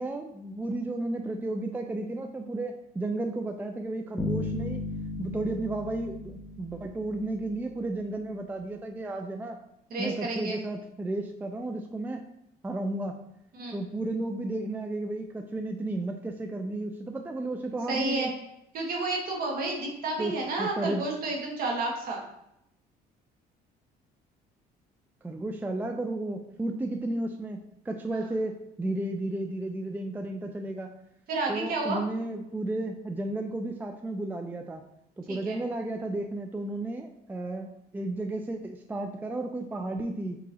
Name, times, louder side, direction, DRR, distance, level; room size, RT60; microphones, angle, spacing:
voice 1, 0.0-4.8 5.2-9.6 10.0-12.2 12.6-13.2 13.7-18.3 20.2-20.3 20.6-21.1 25.2-27.6 27.9-28.5 28.8-30.9 31.5-34.8 35.2-37.7 37.9-40.4, right 2 dB, 10° right, 4 dB, 0.3 m, -33 dB
sound 1, 4.2-7.6, left 3 dB, 20° left, 0.9 m, -35 dB
voice 2, 9.9-10.6 13.5-13.8 17.9-18.3 18.7-22.2 28.1-28.3 31.3-32.0 35.3-35.6, right 2 dB, 60° right, -1 dB, 1.4 m, -31 dB
6.1 x 2.9 x 2.8 m, 0.81 s
cardioid pair, 110°, 17 cm